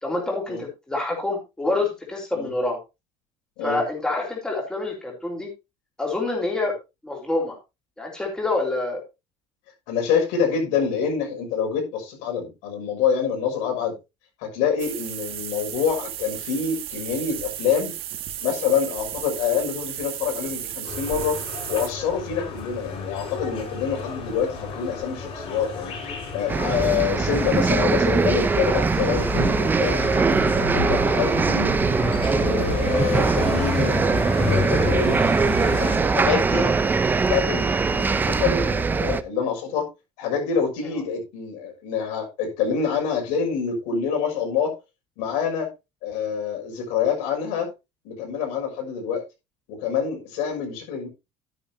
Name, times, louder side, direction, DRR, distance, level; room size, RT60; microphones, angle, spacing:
voice 1, 0.0-2.8 3.6-5.5 6.0-6.7 7.0-7.6 8.0-9.0 30.7-30.9 40.9-41.0, left 2 dB, 5° left, 4.0 m, -27 dB
voice 2, 9.9-13.9 14.4-17.9 18.4-21.4 21.7-30.0 30.6-31.8 32.2-34.0 34.4-35.2 35.8-36.7 37.3-39.9 40.2-44.8 45.2-45.7 46.0-47.7 48.0-49.2 49.7-51.1, left 7 dB, 80° left, 6.1 m, -26 dB
sound 1, 14.8-21.9, right 11 dB, 50° right, 2.0 m, -34 dB
sound 2, 20.8-36.0, left 5 dB, 45° left, 5.6 m, -32 dB
sound 3, 26.5-39.2, right 4 dB, 15° right, 0.7 m, -22 dB
12.5 x 10.0 x 2.8 m
cardioid pair, 150°, 12 cm